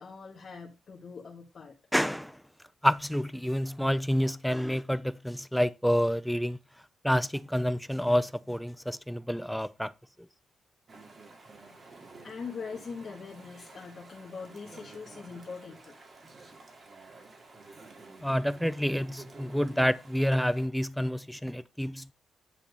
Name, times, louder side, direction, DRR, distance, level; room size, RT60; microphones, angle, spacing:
voice 1, 0.0-1.7 11.5-11.8 12.2-15.9, left 5 dB, 45° left, 1.7 m, -42 dB
voice 2, 1.9-2.4 2.8-6.6 7.0-9.9 18.2-22.1, equal, ahead, 0.5 m, -28 dB
Chatter / Stream, 10.9-20.7, right 3 dB, 40° right, 2.4 m, -51 dB
10.0 x 4.4 x 5.3 m
wide cardioid pair, 130°, 0 cm